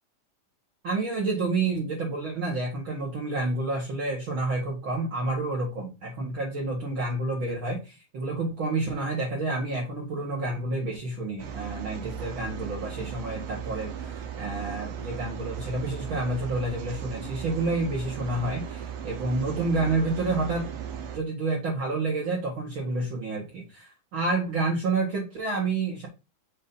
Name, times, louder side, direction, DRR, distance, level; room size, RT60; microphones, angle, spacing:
voice 1, 0.8-20.8 21.1-26.1, right 3 dB, 55° right, 1.6 m, -29 dB
sound 1, 11.4-21.2, right 8 dB, 70° right, 1.7 m, -37 dB
6.8 x 2.7 x 5.2 m
omnidirectional pair, 3.5 m